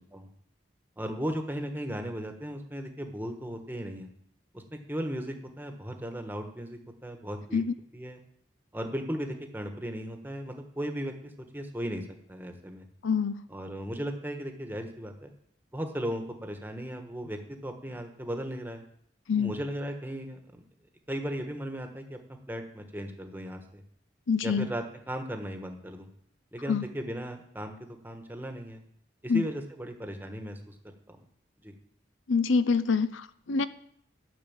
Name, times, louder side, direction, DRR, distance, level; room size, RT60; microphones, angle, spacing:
voice 1, 1.0-4.1 4.5-7.6 7.9-8.2 8.7-12.9 13.5-15.3 15.7-18.8 19.4-20.6 21.1-22.2 22.5-23.8 24.4-26.1 26.5-28.8 29.2-30.7 31.1-31.2 31.6-31.7, equal, 10° right, 5 dB, 1.2 m, -36 dB
voice 2, 13.0-13.4 19.3-19.5 24.3-24.7 26.7-26.8 29.3-29.4 32.3-33.7, left 5 dB, 85° left, 14 dB, 0.6 m, -26 dB
12.5 x 6.6 x 8.7 m, 0.69 s
head